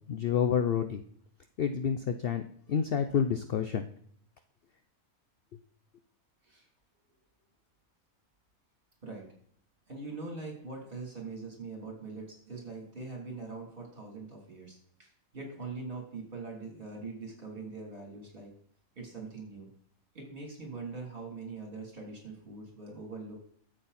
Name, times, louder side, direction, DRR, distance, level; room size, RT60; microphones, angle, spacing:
voice 1, 0.1-1.0 1.6-2.4 2.7-3.9, left 7 dB, 55° left, 8 dB, 0.7 m, -28 dB
voice 2, 9.9-18.5 18.9-19.7 20.1-23.4, right 3 dB, 40° right, -1 dB, 3.4 m, -42 dB
12.5 x 7.8 x 4.2 m, 0.63 s
omnidirectional pair, 1.5 m